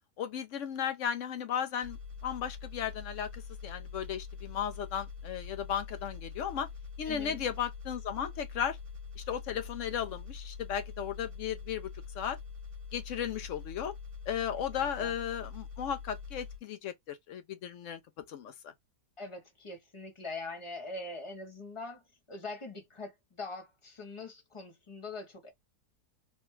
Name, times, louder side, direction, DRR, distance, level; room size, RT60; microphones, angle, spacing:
voice 1, 0.2-2.0 2.2-6.7 7.0-8.8 9.2-12.4 12.9-13.9 14.3-18.0 18.3-18.7, left 8 dB, 70° left, 0.7 m, -35 dB
sound 1, 1.8-16.6, left 5 dB, 50° right, 1.4 m, -44 dB
voice 2, 7.0-7.4 14.7-15.2 19.2-25.5, left 3 dB, 30° left, 0.6 m, -43 dB
3.3 x 2.2 x 3.1 m
omnidirectional pair, 1.8 m